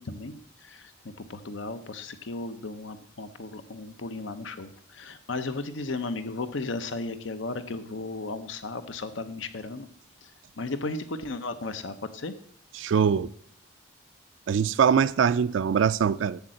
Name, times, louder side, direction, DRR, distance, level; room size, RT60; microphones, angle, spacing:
voice 1, 0.0-9.9 10.2-10.3 10.6-12.3, left 3 dB, 75° left, 0.7 m, -35 dB
voice 2, 12.8-13.3 14.5-16.4, right 7 dB, 75° right, 0.3 m, -23 dB
8.1 x 7.3 x 7.7 m
head